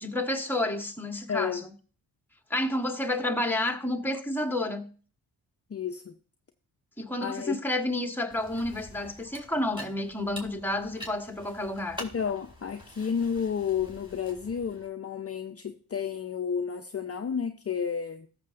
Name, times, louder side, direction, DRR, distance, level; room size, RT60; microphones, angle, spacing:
voice 1, 0.0-1.7 2.5-4.9 7.0-12.0, left 1 dB, 5° left, 1.5 m, -30 dB
voice 2, 1.3-1.6 5.7-6.1 7.2-7.6 12.0-18.3, left 7 dB, 35° left, 0.7 m, -31 dB
sound 1, 8.3-14.9, left 1 dB, 10° right, 4.3 m, -46 dB
14.0 x 6.9 x 2.6 m
supercardioid pair, 50°, 41 cm